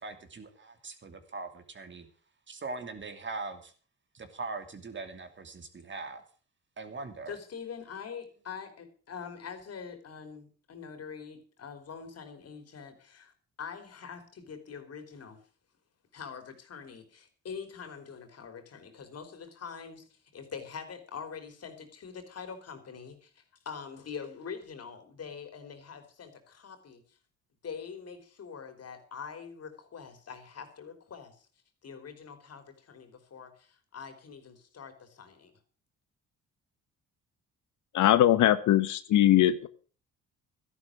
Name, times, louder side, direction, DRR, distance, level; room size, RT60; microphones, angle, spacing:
voice 1, 0.0-2.1 2.5-3.7 4.1-6.2 6.8-7.4, right 3 dB, 40° right, 2.7 m, -41 dB
voice 2, 7.3-13.3 13.6-15.4 16.1-27.2 27.6-31.5 31.8-35.6, left 6 dB, 55° left, 3.5 m, -44 dB
voice 3, 37.9-39.5, left 12 dB, 75° left, 0.9 m, -21 dB
13.0 x 11.0 x 6.3 m
cardioid pair, 90°, 30 cm